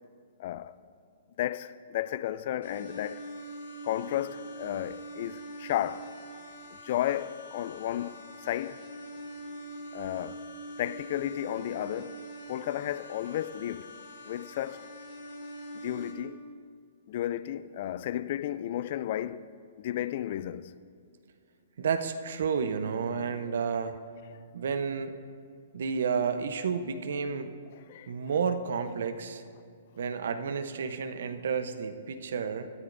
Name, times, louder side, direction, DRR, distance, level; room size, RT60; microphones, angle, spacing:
voice 1, 0.4-0.7 1.4-3.3 3.8-6.1 6.8-8.8 9.9-10.4 10.8-12.2 12.5-13.9 14.2-14.9 15.7-16.4 17.1-19.5 19.8-20.7 27.9-28.1, left 12 dB, 50° left, 0.4 m, -33 dB
sound 1, 2.6-16.1, right 1 dB, 80° left, 2.1 m, -44 dB
voice 2, 21.8-24.0 24.5-25.2 25.7-27.5 28.1-29.4 30.0-32.7, right 6 dB, 70° right, 0.8 m, -31 dB
19.0 x 13.0 x 2.6 m
hypercardioid pair, 140°, 0 cm